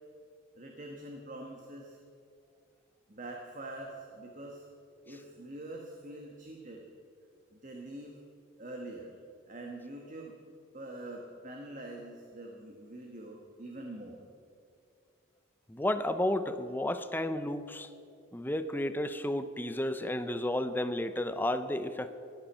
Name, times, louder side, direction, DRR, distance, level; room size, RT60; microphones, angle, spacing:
voice 1, 0.5-2.0 3.1-4.7 5.0-6.8 7.5-8.2 8.6-9.2 9.5-10.3 10.7-14.2, right 1 dB, 40° right, 1 dB, 1.2 m, -44 dB
voice 2, 15.7-17.9 18.3-22.2, left 1 dB, 10° left, 11 dB, 0.5 m, -32 dB
14.5 x 12.0 x 5.5 m, 2.6 s
head